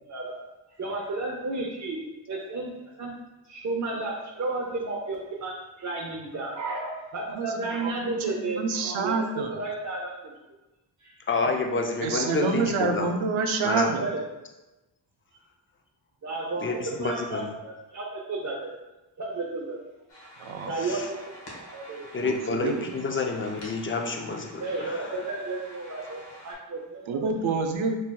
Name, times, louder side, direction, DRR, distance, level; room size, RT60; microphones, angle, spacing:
voice 1, 0.1-0.4 0.8-2.0 2.3-2.7 3.0-3.2 3.5-9.2 9.5-10.3 11.0-11.1 12.2-12.3 14.0-14.2 16.2-16.7 17.0-18.7 19.2-19.9 20.7-21.0 21.5-22.1 24.6-27.3, right 2 dB, 40° right, -4 dB, 0.5 m, -32 dB
voice 2, 7.8-9.6 12.0-14.1 20.4-20.7 22.2-22.9 27.1-28.0, right 4 dB, 90° right, 4 dB, 0.6 m, -28 dB
voice 3, 11.3-13.1 13.6-13.9 16.6-17.5 20.8-21.1 22.1-25.2, left 4 dB, 30° left, 2 dB, 0.4 m, -29 dB
sound 1, 20.1-26.5, equal, 65° left, 1.2 m, -47 dB
4.4 x 3.0 x 2.2 m, 1.0 s
wide cardioid pair, 110°, 46 cm